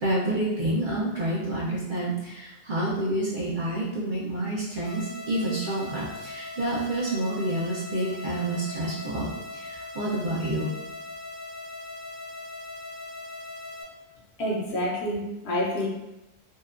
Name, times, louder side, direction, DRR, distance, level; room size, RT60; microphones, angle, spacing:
voice 1, 0.0-10.7, right 1 dB, 55° right, -8 dB, 0.6 m, -28 dB
sound 1, 4.8-13.8, left 2 dB, 80° left, 1.1 m, -40 dB
voice 2, 14.4-15.9, equal, 65° left, -3 dB, 0.8 m, -28 dB
2.7 x 2.1 x 2.4 m, 0.96 s
omnidirectional pair, 1.3 m